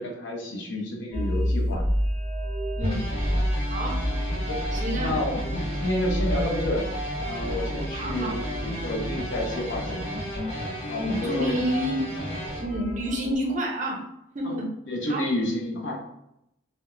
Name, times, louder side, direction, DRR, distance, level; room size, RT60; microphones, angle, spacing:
voice 1, 0.0-1.9 4.5-4.6 5.0-6.9 7.3-10.0 10.9-11.5 14.4-14.5 14.9-16.1, left 1 dB, 65° left, 0 dB, 0.6 m, -30 dB
sound 1, 1.1-13.3, equal, 10° left, 0.6 m, -30 dB
sound 2, 2.8-12.6, equal, 35° left, 0.9 m, -34 dB
voice 2, 4.7-5.1 7.9-8.4 11.0-12.0 12.6-14.1 14.3-14.7 15.1-15.2, equal, 40° right, 0 dB, 0.5 m, -29 dB
2.4 x 2.0 x 2.9 m, 0.81 s
head